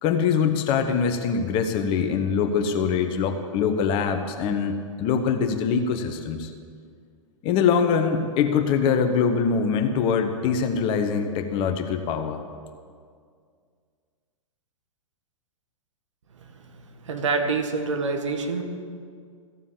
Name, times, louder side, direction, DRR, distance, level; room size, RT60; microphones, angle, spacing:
voice 1, 0.0-6.5 7.4-12.4, left 6 dB, 30° left, 7 dB, 1.0 m, -23 dB
voice 2, 17.0-18.6, right 4 dB, 60° right, 5 dB, 1.7 m, -26 dB
15.0 x 7.3 x 8.4 m, 2.1 s
figure-of-eight pair, 110°, 17 cm